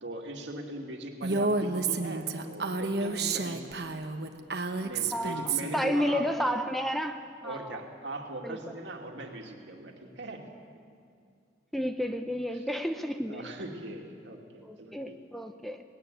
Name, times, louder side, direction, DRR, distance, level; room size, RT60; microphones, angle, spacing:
voice 1, 0.0-3.7 4.8-6.3 7.4-10.5 12.5-12.6 13.3-15.2, right 1 dB, 75° right, 2 dB, 2.3 m, -40 dB
Female speech woman speaking, 1.2-5.9, right 3 dB, 60° right, 1.2 m, -30 dB
voice 2, 5.1-7.8 8.4-8.8 11.7-13.5 14.6-15.8, equal, ahead, 7 dB, 0.7 m, -31 dB
19.0 x 17.0 x 9.2 m, 2.3 s
head